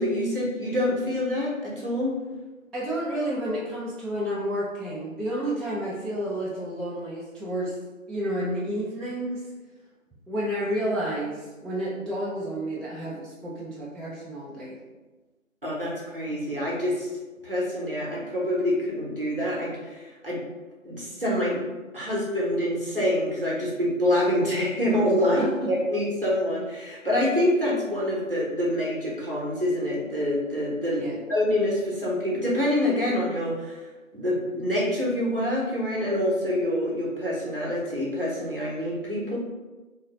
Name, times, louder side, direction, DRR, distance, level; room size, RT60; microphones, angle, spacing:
voice 1, 0.0-2.2 15.6-17.1 17.4-20.4 20.8-21.6 21.9-31.0 31.3-33.9 34.1-39.4, left 1 dB, 40° right, -5 dB, 0.8 m, -26 dB
voice 2, 2.7-7.8 8.1-9.4 10.3-14.8 25.3-25.7 31.0-31.2, right 1 dB, ahead, -7 dB, 0.4 m, -30 dB
2.8 x 2.7 x 2.9 m, 1.2 s
figure-of-eight pair, 170°, 41 cm